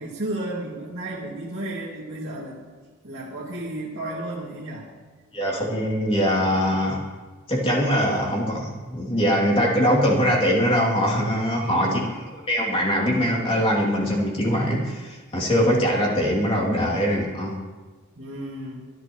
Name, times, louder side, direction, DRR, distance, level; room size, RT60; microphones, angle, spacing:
voice 1, 0.0-2.6 3.0-4.9 11.6-12.1 18.2-18.8, right 1 dB, 55° right, -7 dB, 2.4 m, -33 dB
voice 2, 5.3-7.0 7.5-12.0 12.5-17.5, equal, 25° left, -3 dB, 2.8 m, -22 dB
25.0 x 11.0 x 3.1 m, 1.3 s
head